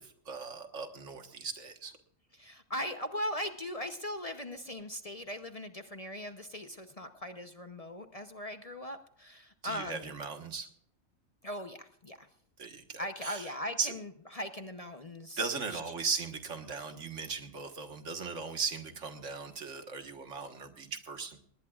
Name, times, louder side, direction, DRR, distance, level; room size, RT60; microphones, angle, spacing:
voice 1, 0.0-1.9 9.6-10.7 12.6-13.5 13.8-13.9 15.4-21.4, right 5 dB, 70° right, 7 dB, 1.8 m, -38 dB
voice 2, 2.3-10.1 11.4-12.3 13.0-15.4 15.7-15.8, left 1 dB, 35° left, 8 dB, 0.8 m, -39 dB
19.5 x 18.5 x 2.4 m, 0.67 s
omnidirectional pair, 1.3 m